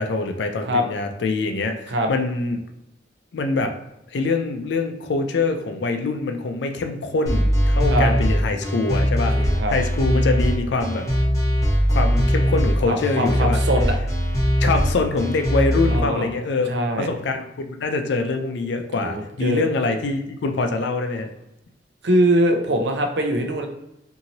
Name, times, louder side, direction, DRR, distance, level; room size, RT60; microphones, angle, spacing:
voice 1, 0.0-2.6 3.3-3.7 4.1-9.4 9.7-11.1 11.9-13.6 14.6-16.7 17.0-21.3, left 3 dB, 80° left, 5 dB, 0.4 m, -24 dB
sound 1, 7.3-16.0, equal, 20° left, 0.8 m, -20 dB
voice 2, 9.3-9.7 12.8-14.0 15.9-16.3 16.7-17.1 19.0-19.6 22.0-23.7, right 1 dB, 80° right, 4 dB, 0.5 m, -22 dB
2.8 x 2.7 x 2.7 m, 0.87 s
head